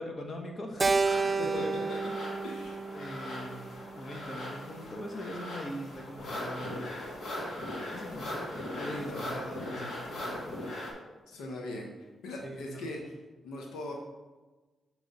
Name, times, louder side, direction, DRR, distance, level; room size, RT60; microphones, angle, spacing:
voice 1, 0.0-2.2 2.9-6.9 7.9-10.5 12.4-12.8, left 1 dB, 45° left, 2 dB, 1.1 m, -41 dB
Keyboard (musical), 0.8-5.2, right 4 dB, 35° right, 0.3 m, -32 dB
sound 1, 1.0-10.9, left 1 dB, 65° left, 1.5 m, -40 dB
voice 2, 1.4-2.0 2.4-2.9 8.7-9.2 10.6-10.7 11.3-13.1 13.4-13.9, left 1 dB, 90° left, 0 dB, 0.8 m, -40 dB
6.3 x 3.1 x 5.3 m, 1.2 s
cardioid pair, 65°, 0 cm